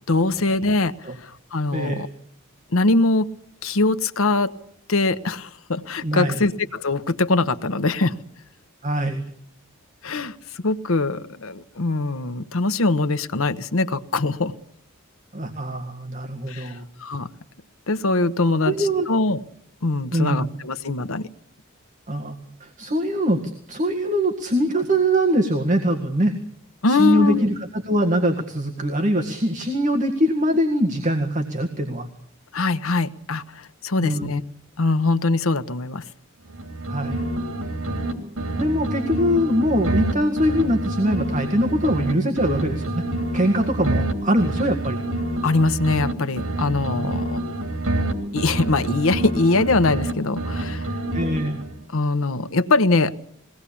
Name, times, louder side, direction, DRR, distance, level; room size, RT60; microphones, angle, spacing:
voice 1, 0.1-0.9 1.2-2.1 2.7-3.3 3.6-4.5 4.9-8.2 10.0-14.5 16.5-16.7 17.0-17.3 17.9-19.4 19.8-21.3 26.8-27.5 32.5-34.4 34.8-36.0 45.4-47.4 48.3-50.9 51.9-53.1, left 3 dB, 75° left, 12 dB, 1.0 m, -22 dB
voice 2, 1.7-2.1 6.0-6.4 8.8-9.2 15.3-16.9 18.6-19.1 20.1-20.5 22.1-23.4 23.7-26.3 26.9-32.1 34.0-34.3 36.9-37.2 38.6-43.0 43.3-45.0 46.9-47.2 51.1-51.6, equal, 40° right, 3 dB, 1.8 m, -22 dB
sound 1, 36.5-38.1 38.4-42.1 42.4-46.1 46.4-50.1 50.4-51.8, right 1 dB, 85° right, 3.1 m, -27 dB
22.0 x 18.0 x 8.6 m, 0.67 s
head